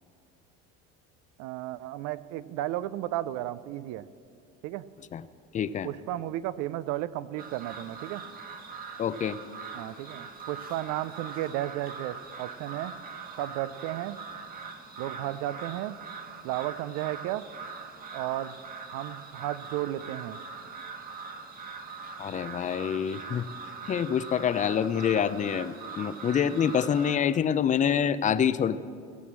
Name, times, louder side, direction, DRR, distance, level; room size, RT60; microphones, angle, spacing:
voice 1, 1.4-4.1 4.6-4.8 5.8-8.2 9.7-12.9 13.4-14.2 15.0-16.0 16.4-17.4 18.1-18.6 18.9-20.4, right 14 dB, 70° right, 17 dB, 0.5 m, -33 dB
voice 2, 5.5-5.9 9.0-9.4 22.2-23.5 23.9-28.8, left 8 dB, 25° left, 14 dB, 0.4 m, -26 dB
sound 1, 7.4-27.2, right 5 dB, 30° right, 1.3 m, -42 dB
17.0 x 6.2 x 7.4 m, 2.3 s
supercardioid pair, 110°, 30 cm